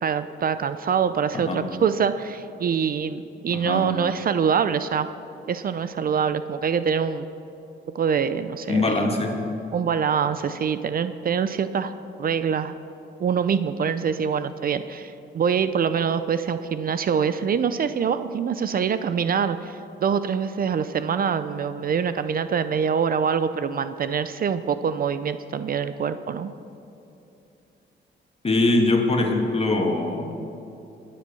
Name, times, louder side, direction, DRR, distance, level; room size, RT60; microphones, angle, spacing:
voice 1, 0.0-5.1 5.5-7.3 7.9-9.0 9.7-11.9 12.2-12.8 13.2-26.5, right 7 dB, 45° right, 12 dB, 0.6 m, -24 dB
voice 2, 3.5-3.9 8.7-9.4 28.4-30.3, left 2 dB, 30° left, 2 dB, 2.2 m, -22 dB
20.0 x 7.7 x 6.9 m, 2.8 s
cardioid pair, 90°, 20 cm